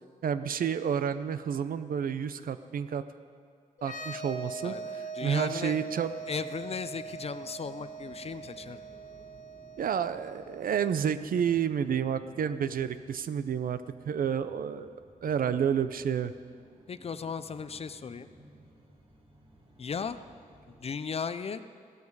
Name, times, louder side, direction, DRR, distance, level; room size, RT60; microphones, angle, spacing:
voice 1, 0.2-3.0 3.8-6.1 9.8-14.9 15.2-16.3, right 8 dB, 75° right, 12 dB, 0.6 m, -30 dB
sound 1, 3.8-11.3, right 4 dB, 60° left, 1.1 m, -42 dB
voice 2, 4.6-5.8 6.3-8.8 16.9-18.3 19.8-20.2 20.8-21.6, left 6 dB, 45° left, 13 dB, 0.5 m, -36 dB
sound 2, 5.3-20.9, right 1 dB, 35° right, 2.1 m, -57 dB
15.5 x 12.5 x 4.7 m, 2.1 s
wide cardioid pair, 120°, 15 cm